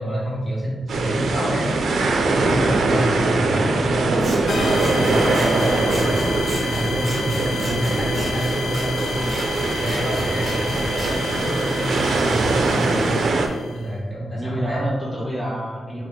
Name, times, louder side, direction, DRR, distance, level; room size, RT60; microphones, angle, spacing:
voice 1, 0.0-1.7 2.2-4.2 4.4-6.3 6.6-9.5 9.7-13.1 13.7-14.8, equal, 35° left, -6 dB, 1.4 m, -27 dB
sound 1, 0.9-13.5, right 3 dB, 80° right, 0.4 m, -22 dB
Scissors, 4.2-11.1, right 1 dB, 45° right, 0.9 m, -35 dB
sound 2, 4.5-13.9, left 4 dB, 70° left, 0.4 m, -31 dB
voice 2, 7.5-7.9 10.7-10.9 14.3-16.1, equal, ahead, -6 dB, 0.6 m, -28 dB
3.6 x 2.5 x 4.4 m, 1.4 s
wide cardioid pair, 140°, 0 cm